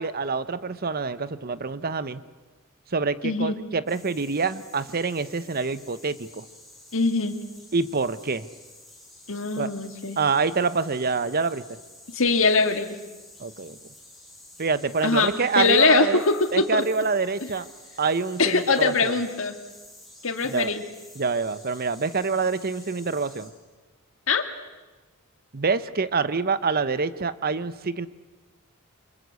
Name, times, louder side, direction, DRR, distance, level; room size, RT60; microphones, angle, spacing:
voice 1, 0.0-2.2 2.9-6.4 7.7-8.5 9.6-9.7 10.2-11.6 13.4-13.8 14.6-16.2 16.5-17.7 18.0-19.1 20.5-20.7 21.2-23.5 25.5-28.1, right 4 dB, 45° right, 14 dB, 0.9 m, -26 dB
voice 2, 3.2-3.5 6.9-7.4 9.3-10.2 12.1-13.0 15.0-16.8 18.4-19.5 20.2-20.8 24.3-24.4, left 4 dB, 65° left, 7 dB, 2.1 m, -22 dB
sound 1, 3.9-23.5, left 1 dB, ahead, 6.6 m, -50 dB
28.0 x 25.5 x 8.3 m, 1.2 s
head